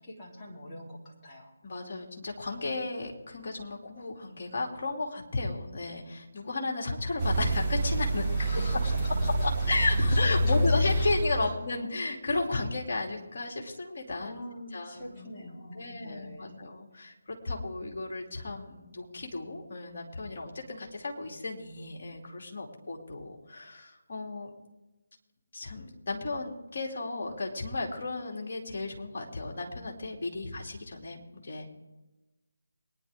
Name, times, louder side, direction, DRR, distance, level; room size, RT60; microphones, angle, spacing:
voice 1, 0.0-1.5 8.3-9.5 10.1-11.6 14.2-16.7, left 1 dB, 15° left, -7 dB, 3.6 m, -44 dB
voice 2, 1.6-8.3 8.5-8.8 9.4-14.3 14.7-15.4 15.7-24.5 25.5-31.7, left 2 dB, 45° left, -1 dB, 3.0 m, -34 dB
sound 1, 7.2-11.5, right 1 dB, ahead, 2.9 m, -27 dB
23.0 x 10.5 x 3.7 m, 1.1 s
figure-of-eight pair, 150°, 0 cm